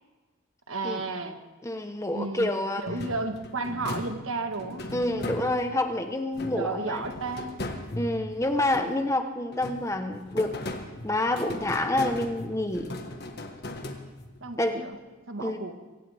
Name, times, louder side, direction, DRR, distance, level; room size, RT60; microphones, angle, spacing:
voice 1, 0.7-1.4 2.1-2.5 2.8-5.0 6.5-7.7 14.4-15.0 15.3-15.8, right 3 dB, 80° right, 6 dB, 1.5 m, -33 dB
voice 2, 1.6-2.8 4.9-7.0 7.9-10.6 11.0-12.9 14.6-14.8 15.4-15.6, left 1 dB, 15° left, 7 dB, 1.0 m, -28 dB
sound 1, 2.9-5.9 6.3-9.2 9.5-14.5, left 1 dB, 50° left, 1.5 m, -38 dB
23.0 x 17.5 x 3.5 m, 1.3 s
head